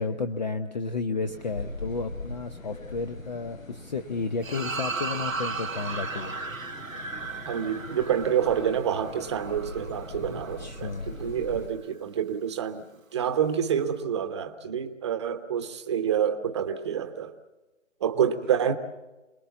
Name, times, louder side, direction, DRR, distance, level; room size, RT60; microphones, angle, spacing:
voice 1, 0.0-6.4 10.2-11.1, left 4 dB, 35° left, 9 dB, 0.9 m, -32 dB
sound 1, 1.3-11.7, left 2 dB, 85° left, 6.0 m, -41 dB
sound 2, 4.4-11.0, right 4 dB, 90° right, 1.3 m, -36 dB
voice 2, 7.5-12.9 13.1-17.3 18.0-18.7, right 8 dB, 20° right, 8 dB, 1.2 m, -27 dB
27.5 x 20.0 x 7.2 m, 1.1 s
figure-of-eight pair, 160°, 39 cm